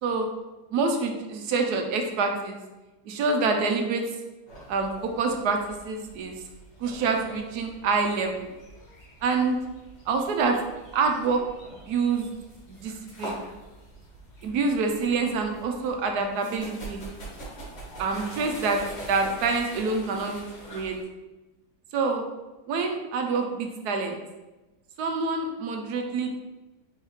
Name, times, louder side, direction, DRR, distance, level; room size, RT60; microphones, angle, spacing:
voice 1, 0.7-2.6 3.1-4.0 4.7-6.4 6.8-8.5 9.2-9.6 10.1-10.6 10.9-11.4 11.9-12.3 12.7-12.9 13.2-13.4 14.4-17.0 18.0-18.8 19.1-20.4 20.7-21.0 21.9-22.2 22.7-24.2 25.0-26.4, right 4 dB, 75° right, 3 dB, 1.1 m, -26 dB
sound 1, 4.5-21.0, right 1 dB, 85° left, 2.3 m, -44 dB
4.4 x 3.4 x 3.1 m, 1.1 s
omnidirectional pair, 1.8 m